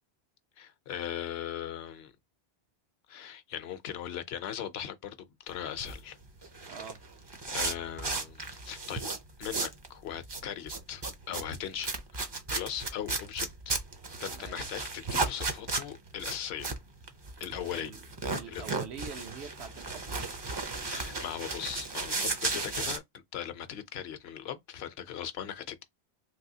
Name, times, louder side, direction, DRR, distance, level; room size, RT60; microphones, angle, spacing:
voice 1, 0.6-2.1 3.1-6.2 7.5-9.1 9.4-11.9 12.5-13.8 14.2-16.7 17.4-17.9 18.5-18.6 20.9-25.8, left 10 dB, 75° left, 0.8 m, -39 dB
sound 1, 5.6-9.9 10.1-23.0, right 3 dB, 35° right, 0.4 m, -35 dB
voice 2, 6.7-7.0 14.3-14.7 17.7-18.1 18.3-20.1, right 6 dB, 80° right, 1.0 m, -45 dB
3.4 x 2.7 x 2.7 m
omnidirectional pair, 1.1 m